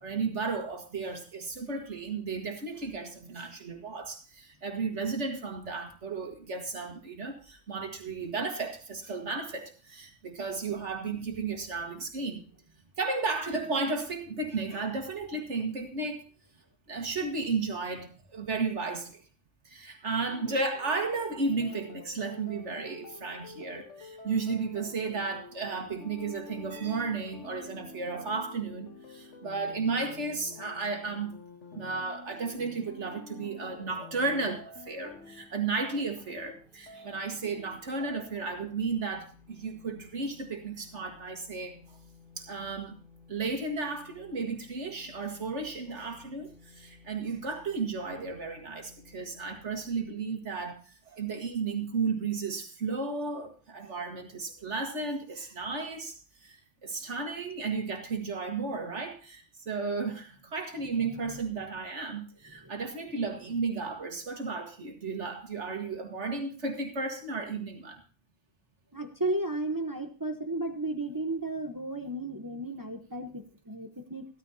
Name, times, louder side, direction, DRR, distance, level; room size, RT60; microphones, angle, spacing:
voice 1, 0.0-12.5 13.0-16.2 16.9-19.2 19.7-31.4 31.8-42.0 42.4-42.9 43.3-56.6 56.8-68.0, right 4 dB, 70° right, 3 dB, 2.0 m, -34 dB
sound 1, 20.3-38.6, left 4 dB, 75° left, 1.6 m, -49 dB
sound 2, 34.7-50.1, left 4 dB, ahead, 3.0 m, -57 dB
voice 2, 68.9-74.3, right 2 dB, 20° right, 6 dB, 1.0 m, -34 dB
15.5 x 13.0 x 2.8 m, 0.38 s
omnidirectional pair, 1.2 m